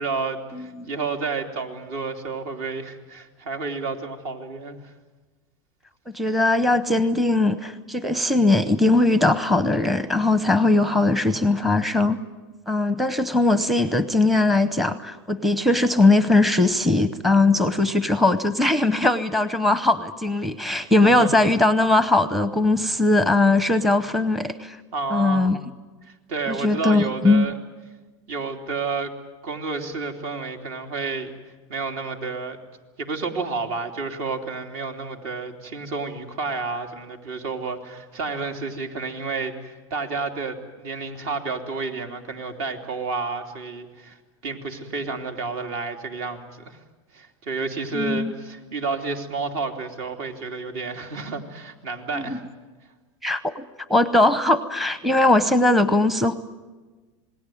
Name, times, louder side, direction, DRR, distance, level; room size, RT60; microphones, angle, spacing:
voice 1, 0.0-4.9 21.0-21.3 24.9-25.6 26.1-27.6 28.3-29.1 29.4-31.3 31.7-32.6 33.0-44.2 44.4-46.8 47.1-52.4, right 4 dB, 60° right, 4 dB, 3.2 m, -30 dB
voice 2, 0.5-0.9 6.1-12.2 12.7-24.8 25.1-25.6 26.5-27.5 47.9-48.3 52.1-52.4 53.2-56.3, left 2 dB, ahead, 12 dB, 0.8 m, -20 dB
27.5 x 19.5 x 9.2 m, 1.3 s
supercardioid pair, 130°, 16 cm